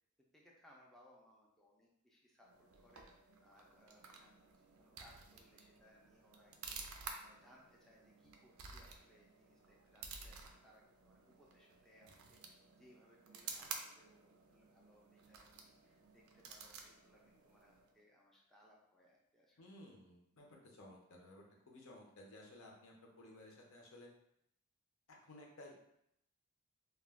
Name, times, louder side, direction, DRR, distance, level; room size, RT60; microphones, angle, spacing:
voice 1, 0.3-3.1 3.4-6.9 7.2-12.4 12.8-19.7, equal, ahead, -4 dB, 0.4 m, -67 dB
sound 1, 2.4-18.0, right 5 dB, 75° right, 0.4 m, -53 dB
voice 2, 19.6-24.1 25.1-25.7, left 1 dB, 70° left, -1 dB, 0.6 m, -57 dB
2.3 x 2.2 x 3.4 m, 0.76 s
head